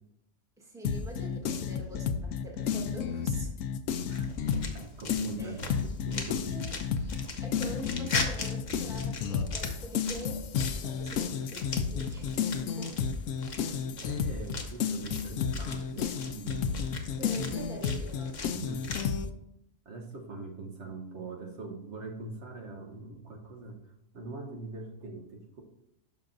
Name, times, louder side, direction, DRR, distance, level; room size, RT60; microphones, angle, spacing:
voice 1, 0.6-3.5 5.4-5.7 6.5-6.7 7.4-10.4 10.8-13.1 14.4-14.5 17.2-18.4, right 1 dB, 5° right, -1 dB, 1.2 m, -44 dB
sound 1, 0.8-4.8 5.1-19.3, left 7 dB, 75° left, 1.0 m, -32 dB
sound 2, 4.1-19.1, left 3 dB, 40° left, 0.8 m, -40 dB
voice 2, 4.1-6.6 14.0-16.9 18.5-18.8 19.8-23.8 24.1-25.6, right 3 dB, 60° right, 1 dB, 1.3 m, -43 dB
11.0 x 5.8 x 2.6 m, 0.77 s
omnidirectional pair, 1.4 m